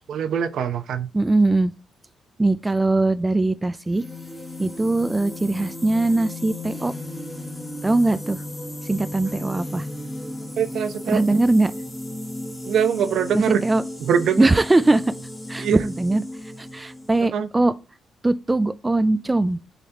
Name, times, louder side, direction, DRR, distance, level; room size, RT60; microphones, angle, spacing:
voice 1, 0.1-1.1 10.6-11.4 12.6-13.6 14.1-14.5 15.6-15.8 17.3-17.5, right 7 dB, 70° right, 0.7 m, -23 dB
voice 2, 1.1-1.7 2.4-4.0 4.6-6.9 7.8-8.4 8.8-9.9 11.1-11.7 13.3-13.8 14.4-15.1 15.5-16.2 16.6-17.7 18.2-19.6, right 2 dB, 15° right, 0.3 m, -21 dB
sound 1, 3.8-17.3, left 1 dB, 10° left, 1.6 m, -35 dB
9.1 x 4.1 x 2.9 m
cardioid pair, 130°, 0 cm